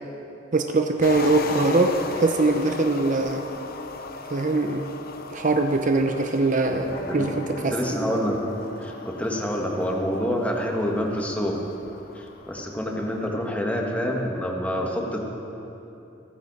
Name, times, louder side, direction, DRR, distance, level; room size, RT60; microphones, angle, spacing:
voice 1, 0.5-3.5 4.3-4.9 5.3-7.8, right 2 dB, 45° right, 5 dB, 0.7 m, -22 dB
sound 1, 1.0-13.5, left 4 dB, 50° left, 0.7 m, -38 dB
sound 2, 6.7-11.5, equal, 85° left, 2.2 m, -40 dB
voice 2, 7.7-8.4 8.8-11.6 12.1-15.2, equal, 10° left, -1 dB, 1.6 m, -27 dB
29.0 x 9.6 x 4.2 m, 2.9 s
head